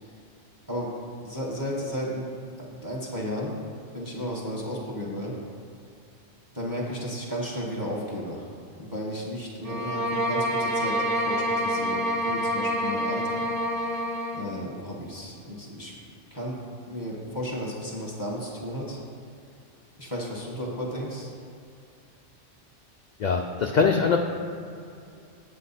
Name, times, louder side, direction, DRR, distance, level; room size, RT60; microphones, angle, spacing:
voice 1, 1.2-2.2 2.6-3.6 3.9-5.3 6.5-8.5 8.8-13.5 14.3-16.0 16.3-19.0 20.0-21.3, equal, 20° right, -3 dB, 1.2 m, -33 dB
sound 1, 9.6-14.5, equal, 45° right, 0.5 m, -27 dB
voice 2, 23.2-24.2, left 5 dB, 60° left, 2 dB, 0.4 m, -22 dB
8.1 x 7.5 x 4.1 m, 2.5 s
omnidirectional pair, 1.3 m